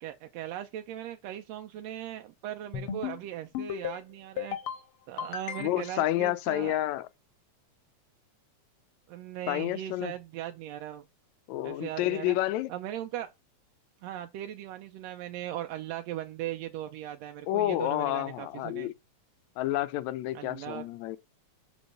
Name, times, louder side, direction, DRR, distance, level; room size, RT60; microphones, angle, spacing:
voice 1, 0.0-4.6 5.1-6.8 9.1-11.0 11.6-12.4 12.7-13.3 14.0-18.9 20.3-20.8, right 12 dB, 75° right, 1.6 m, -38 dB
sound 1, 2.7-3.2 3.5-4.0 4.4-4.8 5.2-6.0, left 9 dB, 60° left, 1.6 m, -35 dB
voice 2, 5.6-7.0 9.5-10.1 11.5-12.7 17.5-18.9 19.6-21.2, left 15 dB, 80° left, 1.9 m, -29 dB
5.3 x 5.1 x 6.6 m
omnidirectional pair, 3.4 m